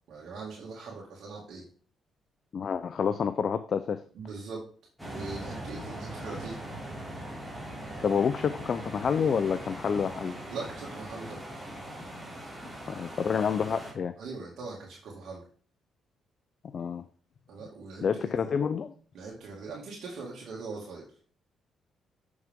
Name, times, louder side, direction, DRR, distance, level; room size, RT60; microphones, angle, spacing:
voice 1, 0.1-1.6 4.1-4.6 5.0-6.6 10.5-11.5 14.2-15.4 17.5-18.5 19.1-21.0, right 4 dB, 70° right, -4 dB, 2.2 m, -41 dB
voice 2, 2.5-4.0 8.0-10.4 12.9-14.1 16.7-17.0 18.0-18.9, left 6 dB, 50° left, 11 dB, 0.5 m, -28 dB
sound 1, 5.0-13.9, right 1 dB, 5° right, 3.0 m, -41 dB
7.3 x 6.3 x 3.7 m, 0.43 s
cardioid pair, 90°, 0 cm